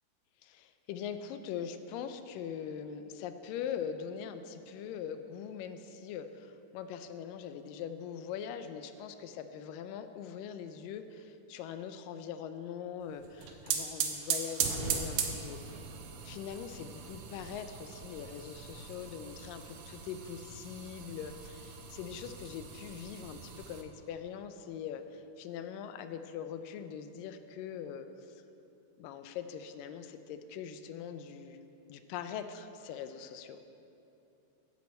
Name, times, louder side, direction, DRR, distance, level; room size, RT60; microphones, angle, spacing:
voice 1, 0.4-15.8 16.2-28.4 29.0-31.6 31.9-33.6, left 8 dB, 85° left, 9 dB, 2.3 m, -42 dB
sound 1, 13.2-23.8, right 7 dB, 70° right, 2.1 m, -39 dB
14.0 x 10.5 x 4.3 m, 2.8 s
omnidirectional pair, 3.9 m